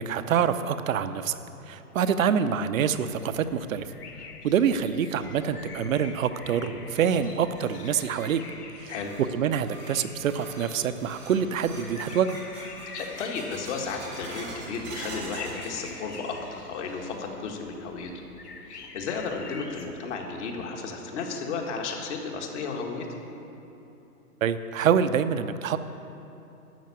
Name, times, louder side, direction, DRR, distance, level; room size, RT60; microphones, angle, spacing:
voice 1, 0.0-1.4 1.7-3.9 4.4-8.4 8.8-8.9 9.3-12.4 24.4-25.8, right 7 dB, 60° right, 11 dB, 0.7 m, -26 dB
sound 1, 2.9-19.9, left 4 dB, 80° left, 1.6 m, -47 dB
sound 2, 6.9-16.6 16.9-17.5 17.9-18.0 18.7-18.8 20.4-20.5 21.0-21.1 21.6-21.7 22.1-22.2 22.8-23.1, right 2 dB, 5° right, 0.3 m, -45 dB
voice 2, 12.9-18.1 18.6-23.1, left 4 dB, 50° left, 2 dB, 1.8 m, -33 dB
12.5 x 6.0 x 8.4 m, 3.0 s
hypercardioid pair, 130°, 46 cm